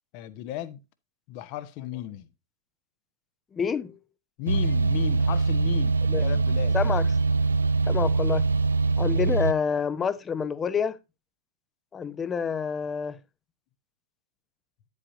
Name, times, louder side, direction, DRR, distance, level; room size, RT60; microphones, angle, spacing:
voice 1, 0.1-0.8 1.3-2.3 4.4-6.8, left 13 dB, 45° left, 1.0 m, -35 dB
voice 2, 3.5-4.0 6.1-6.2 6.7-7.1 7.9-8.5 9.0-11.0 11.9-13.2, left 6 dB, 20° left, 0.7 m, -28 dB
sound 1, 4.5-9.5, right 4 dB, 80° right, 0.5 m, -23 dB
9.9 x 8.4 x 2.7 m
figure-of-eight pair, 100°, 0 cm